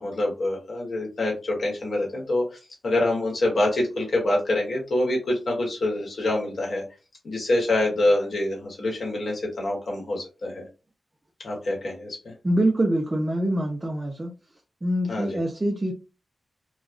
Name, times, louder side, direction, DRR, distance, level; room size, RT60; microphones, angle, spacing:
voice 1, 0.0-6.8 7.2-10.7 11.4-12.3 15.1-15.4, left 1 dB, 65° left, -2 dB, 1.4 m, -26 dB
voice 2, 12.4-14.3 14.8-15.9, right 1 dB, 25° right, 1 dB, 0.5 m, -24 dB
3.1 x 2.3 x 2.5 m, 0.32 s
cardioid pair, 70°, 0 cm